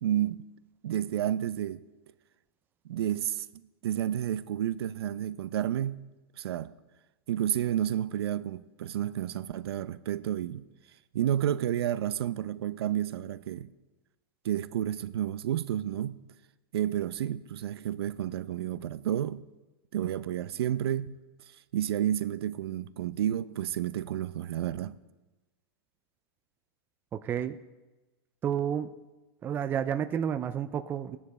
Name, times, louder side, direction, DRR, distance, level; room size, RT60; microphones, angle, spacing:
voice 1, 0.0-0.5 0.8-1.8 2.9-3.5 3.8-6.1 6.4-6.7 7.3-10.7 11.1-13.7 14.4-16.2 16.7-19.5 19.9-21.2 21.7-25.0, right 11 dB, 70° right, 0.6 m, -30 dB
voice 2, 27.1-27.6 28.4-28.9 29.4-31.2, right 9 dB, 15° right, 0.4 m, -30 dB
16.0 x 9.5 x 4.3 m
hypercardioid pair, 145°, 13 cm